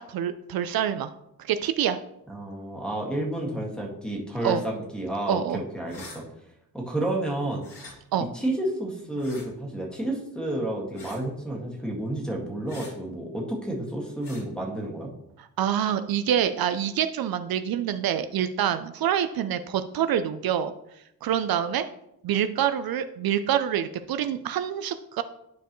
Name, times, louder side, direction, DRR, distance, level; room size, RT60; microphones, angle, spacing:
voice 1, 0.1-1.1 1.4-2.0 4.4-4.6 5.3-5.6 8.1-8.3 15.4-20.7 21.2-21.9 22.2-25.2, right 9 dB, 70° right, 10 dB, 0.5 m, -26 dB
voice 2, 2.3-6.2 6.7-7.6 8.3-15.1, right 1 dB, ahead, -1 dB, 1.8 m, -30 dB
sound 1, 5.8-6.2 7.6-7.9 9.2-9.5 10.9-11.2 12.7-12.9 14.2-14.4, left 2 dB, 60° left, 2.8 m, -45 dB
11.5 x 4.6 x 3.0 m, 0.83 s
cardioid pair, 110°, 37 cm